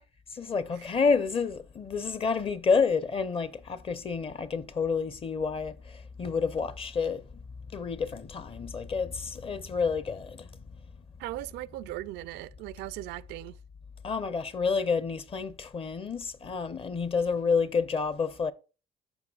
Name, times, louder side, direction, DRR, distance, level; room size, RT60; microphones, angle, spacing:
voice 1, 0.4-7.2 7.7-10.5 14.0-18.5, left 5 dB, 35° left, 0.8 m, -29 dB
voice 2, 11.2-13.6, right 17 dB, 85° right, 0.4 m, -38 dB
13.5 x 4.7 x 2.4 m
cardioid pair, 110°, 17 cm